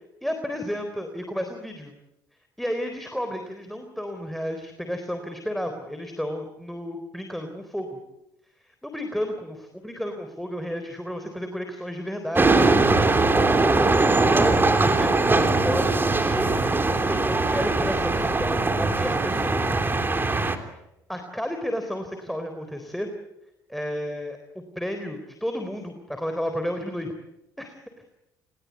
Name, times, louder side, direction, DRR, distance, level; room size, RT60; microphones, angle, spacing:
voice 1, 0.2-1.9 2.6-8.0 8.6-9.6 9.8-12.8 14.1-19.7 21.1-23.1 23.7-24.4 24.8-27.1 27.6-27.7, equal, ahead, 6 dB, 3.9 m, -32 dB
sound 1, 12.4-20.6, right 3 dB, 20° right, 3.3 m, -21 dB
29.5 x 20.0 x 8.4 m, 0.88 s
hypercardioid pair, 65°, 10 cm